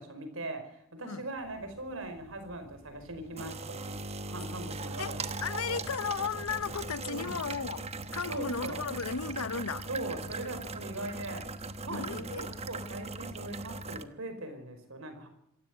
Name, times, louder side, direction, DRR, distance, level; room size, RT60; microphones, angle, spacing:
voice 1, 0.0-3.9 4.3-5.3 5.7-5.9 7.1-7.3 8.3-8.9 9.9-11.4 11.8-15.3, right 2 dB, 65° right, 5.3 m, -40 dB
sound 1, 1.4-14.0, right 3 dB, 30° right, 1.1 m, -40 dB
voice 2, 5.0-9.9 11.9-12.5, left 6 dB, 80° left, 0.8 m, -35 dB
26.5 x 15.0 x 7.9 m
head